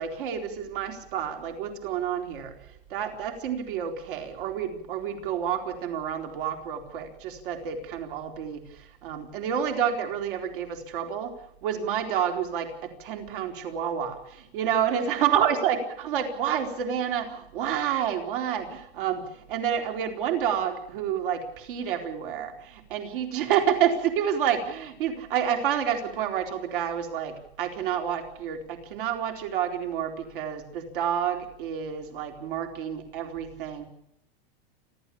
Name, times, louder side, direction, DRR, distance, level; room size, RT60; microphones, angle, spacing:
voice 1, 0.0-33.8, right 9 dB, 55° right, 5 dB, 4.2 m, -29 dB
29.0 x 12.0 x 8.6 m, 0.76 s
supercardioid pair, 175°, 31 cm